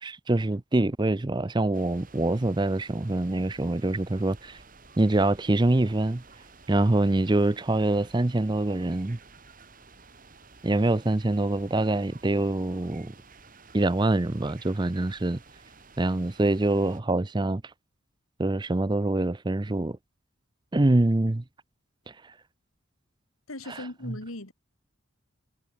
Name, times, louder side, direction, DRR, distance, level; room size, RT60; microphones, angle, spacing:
voice 1, 0.0-4.6 5.0-6.2 6.7-9.2 10.6-13.1 13.7-15.4 16.0-17.6 18.4-20.0 20.7-21.4 22.1-22.3 23.7-24.2, right 2 dB, 20° right, 0.5 m, -25 dB
sound 1, 1.7-17.0, right 4 dB, 40° right, 3.9 m, -53 dB
voice 2, 23.5-24.5, left 1 dB, 80° left, 3.4 m, -38 dB
head